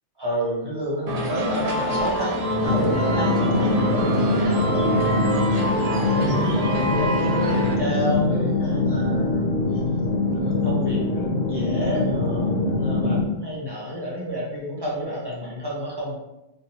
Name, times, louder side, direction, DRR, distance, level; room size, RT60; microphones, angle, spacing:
voice 1, 0.2-5.1 6.1-9.8 10.3-16.1, equal, 20° right, -5 dB, 1.1 m, -30 dB
sound 1, 1.1-7.8, right 1 dB, 45° right, 0.6 m, -25 dB
sound 2, 2.6-13.2, left 3 dB, 65° left, 0.7 m, -23 dB
4.4 x 2.6 x 2.8 m, 0.94 s
omnidirectional pair, 1.2 m